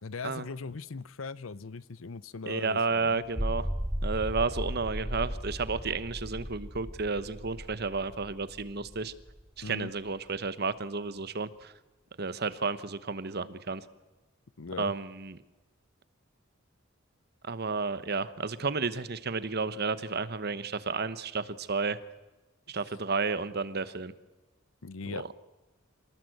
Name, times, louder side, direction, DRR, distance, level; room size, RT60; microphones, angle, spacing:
voice 1, 0.0-3.2 9.6-9.9 14.6-14.9 24.8-25.2, left 4 dB, 75° left, 18 dB, 0.8 m, -39 dB
voice 2, 2.5-3.7 4.0-9.1 9.6-11.7 12.2-13.8 14.8-15.4 17.4-22.0 22.7-24.1 25.1-25.3, right 4 dB, 50° right, 14 dB, 1.1 m, -32 dB
sound 1, 3.3-9.7, equal, 5° right, 0.9 m, -36 dB
26.5 x 19.0 x 7.9 m, 1.1 s
head